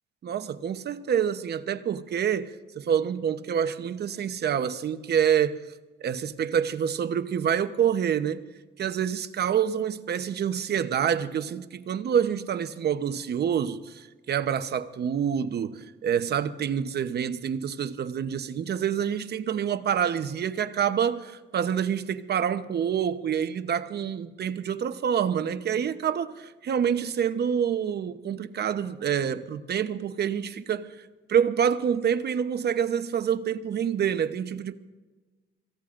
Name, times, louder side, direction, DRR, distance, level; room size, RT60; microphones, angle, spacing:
voice 1, 0.2-5.7 6.0-8.4 8.8-31.0 31.3-34.7, right 8 dB, 55° right, 0.9 m, -27 dB
26.0 x 16.0 x 2.6 m
cardioid pair, 90°, 20 cm